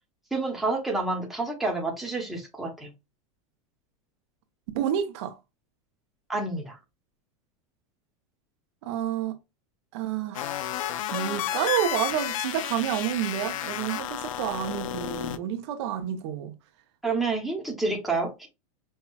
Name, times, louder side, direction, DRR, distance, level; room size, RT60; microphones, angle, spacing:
voice 1, 0.3-2.9 6.3-6.8 17.0-18.5, right 3 dB, ahead, 0.9 m, -29 dB
voice 2, 4.7-5.4 8.8-9.3 9.9-10.6 11.1-16.5, right 10 dB, 60° right, 0.7 m, -29 dB
sound 1, 10.3-15.4, left 12 dB, 90° left, 0.5 m, -32 dB
5.4 x 2.3 x 2.3 m
supercardioid pair, 160°, 16 cm